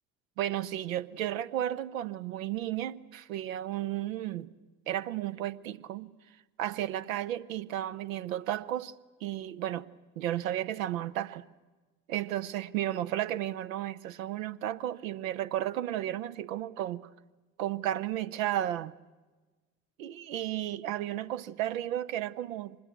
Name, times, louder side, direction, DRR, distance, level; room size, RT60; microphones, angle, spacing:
voice 1, 0.4-4.5 4.9-6.1 6.6-8.9 9.2-9.9 10.2-11.4 12.1-17.0 17.6-18.9 20.0-22.8, right 12 dB, 80° right, 0.9 m, -33 dB
24.5 x 20.5 x 9.2 m
figure-of-eight pair, 50°, 40 cm